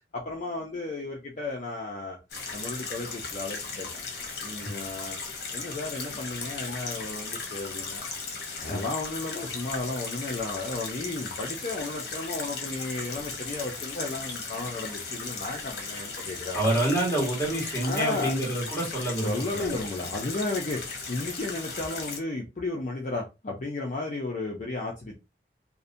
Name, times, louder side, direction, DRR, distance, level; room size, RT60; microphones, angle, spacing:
voice 1, 0.1-2.2 2.5-3.9 4.4-5.2 5.5-8.0 8.6-16.6 17.8-18.3 19.2-25.1, left 2 dB, 45° left, 0.4 m, -33 dB
sound 1, 2.3-22.2, left 4 dB, 65° left, 0.8 m, -37 dB
voice 2, 16.5-19.7, right 1 dB, 15° left, 1.4 m, -27 dB
2.6 x 2.1 x 2.5 m
head